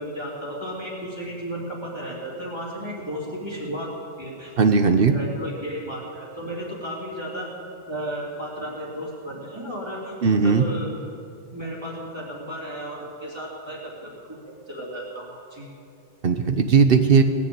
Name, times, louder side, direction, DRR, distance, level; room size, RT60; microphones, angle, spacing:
voice 1, 0.0-3.9 4.2-4.5 5.1-7.5 7.9-10.2 10.4-10.9 11.5-14.2 14.7-15.7, equal, 25° right, -5 dB, 3.3 m, -34 dB
voice 2, 4.6-5.1 10.2-10.7 16.2-17.2, right 5 dB, 55° right, 8 dB, 1.0 m, -17 dB
18.5 x 6.8 x 8.9 m, 2.5 s
omnidirectional pair, 1.2 m